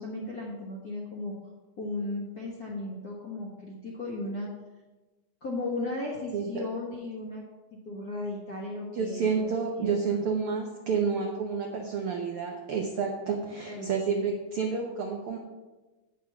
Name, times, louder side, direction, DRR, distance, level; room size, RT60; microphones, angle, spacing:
voice 1, 0.0-1.3 1.8-4.5 5.4-7.4 7.7-9.4 9.8-10.2 13.7-14.1, left 2 dB, 50° left, -4 dB, 1.1 m, -36 dB
voice 2, 6.3-6.6 8.9-15.4, right 5 dB, 85° right, 2 dB, 1.2 m, -30 dB
8.5 x 7.1 x 6.0 m, 1.2 s
omnidirectional pair, 3.9 m